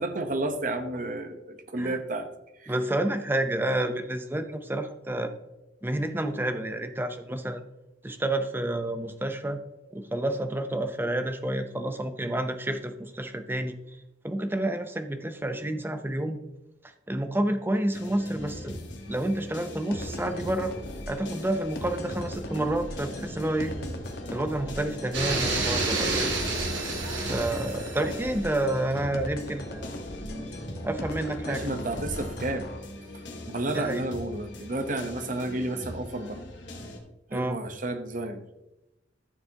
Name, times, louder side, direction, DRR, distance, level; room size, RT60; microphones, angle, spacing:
voice 1, 0.0-2.3 2.6-2.7 31.5-32.7 33.5-36.4 37.3-38.4, right 2 dB, 45° right, 7 dB, 0.9 m, -31 dB
voice 2, 2.7-5.3 5.8-7.6 8.0-9.6 9.9-13.7 14.2-16.4 17.1-18.8 19.1-20.7 21.1-23.7 24.3-26.3 27.3-30.0 30.8-31.7 33.7-34.0 37.3-37.6, right 1 dB, 10° right, 8 dB, 0.6 m, -29 dB
sound 1, 17.9-37.0, left 1 dB, 70° left, 2.2 m, -41 dB
sound 2, 19.9-32.8, left 1 dB, 55° left, 1.3 m, -39 dB
sound 3, 25.1-28.3, right 3 dB, 80° right, 2.4 m, -29 dB
14.0 x 6.8 x 2.8 m, 0.94 s
head